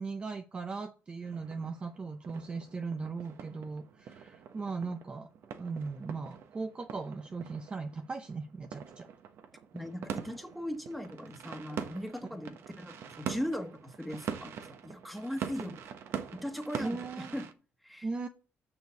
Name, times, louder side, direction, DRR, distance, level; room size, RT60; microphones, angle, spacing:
voice 1, 0.0-5.3 5.6-9.1 16.8-17.3 18.0-18.3, right 4 dB, 25° right, 0.6 m, -38 dB
sound 1, 1.2-17.5, right 8 dB, 65° right, 1.0 m, -44 dB
voice 2, 9.7-15.7 16.3-17.4 17.8-18.1, equal, ahead, 1.3 m, -39 dB
6.9 x 6.6 x 6.8 m
cardioid pair, 140°, 5 cm